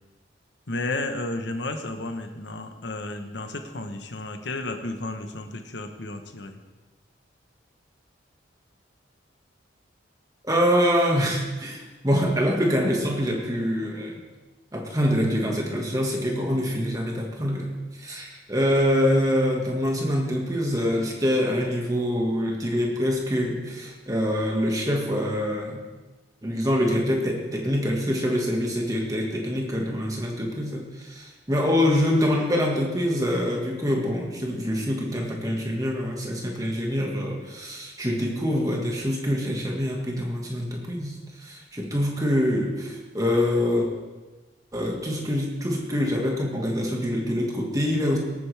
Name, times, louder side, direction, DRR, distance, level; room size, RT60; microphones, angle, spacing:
voice 1, 0.7-6.6, left 2 dB, 65° left, 7 dB, 1.1 m, -32 dB
voice 2, 10.4-14.2 14.7-17.7 18.0-25.8 26.4-43.9 44.7-48.2, equal, 20° right, 0 dB, 1.7 m, -25 dB
18.0 x 9.3 x 3.5 m, 1.2 s
head